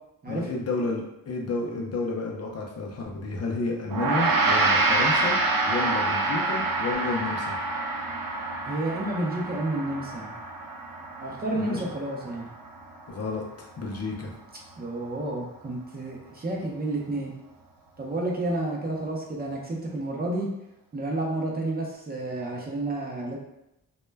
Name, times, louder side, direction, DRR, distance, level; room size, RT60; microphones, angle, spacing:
voice 1, 0.3-5.4 5.7-7.6 11.5-11.8 13.1-14.3, left 3 dB, 50° left, -1 dB, 0.4 m, -31 dB
Gong, 3.9-13.4, right 2 dB, 85° right, 0.5 m, -27 dB
voice 2, 8.7-10.3 11.2-12.5 14.8-17.3 18.0-20.5 20.9-23.4, right 2 dB, 30° right, -2 dB, 0.4 m, -30 dB
2.1 x 2.1 x 3.2 m, 0.88 s
wide cardioid pair, 145°, 34 cm